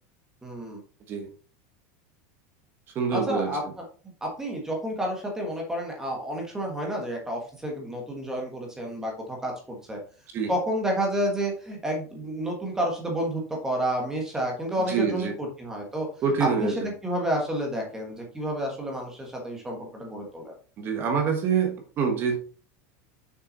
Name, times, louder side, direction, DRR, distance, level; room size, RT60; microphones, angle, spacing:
voice 1, 0.4-0.8 3.1-3.6 4.2-10.0 10.5-16.1 16.4-20.5, equal, 5° right, 0 dB, 1.4 m, -30 dB
voice 2, 2.9-3.6 10.3-10.5 14.9-15.3 16.2-16.9 20.8-22.4, right 6 dB, 25° right, 3 dB, 1.3 m, -26 dB
6.6 x 5.8 x 4.0 m, 0.40 s
supercardioid pair, 175°, 8 cm